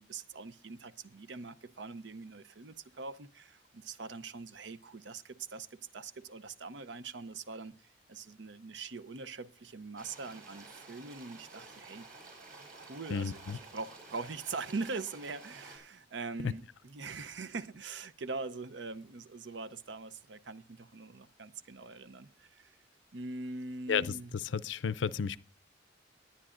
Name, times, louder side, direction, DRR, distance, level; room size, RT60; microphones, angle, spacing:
voice 1, 0.0-12.1 12.7-22.8 23.1-24.3, right 4 dB, 70° right, 0.7 m, -43 dB
sound 1, 10.0-15.8, right 3 dB, 50° right, 4.8 m, -52 dB
voice 2, 13.1-13.6 16.4-16.5 23.9-24.1 24.5-25.4, left 6 dB, 80° left, 0.5 m, -32 dB
20.0 x 9.8 x 2.5 m
head